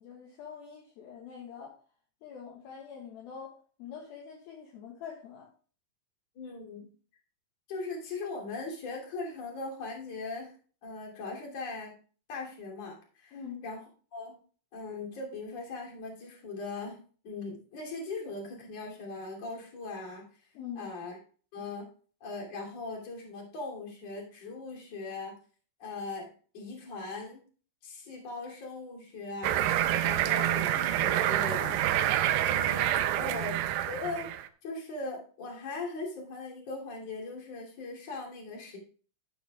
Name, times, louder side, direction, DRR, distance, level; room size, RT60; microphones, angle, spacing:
voice 1, 0.0-1.8 2.2-5.5 13.3-13.6 20.5-20.9 33.3-33.4, left 7 dB, 65° left, -2 dB, 3.0 m, -44 dB
voice 2, 6.4-6.9 7.7-10.6 10.8-12.0 12.3-13.8 14.1-14.4 14.7-17.0 17.2-20.2 20.8-21.2 21.5-21.9 22.2-25.4 25.8-26.3 26.5-27.4 27.8-29.7 30.0-31.8 32.4-32.9 33.2-33.6 33.9-34.3 34.6-38.8, left 3 dB, 40° left, -2 dB, 3.6 m, -39 dB
sound 1, 29.4-34.5, right 12 dB, 80° right, 2.6 m, -27 dB
13.0 x 10.0 x 2.3 m, 0.40 s
omnidirectional pair, 5.0 m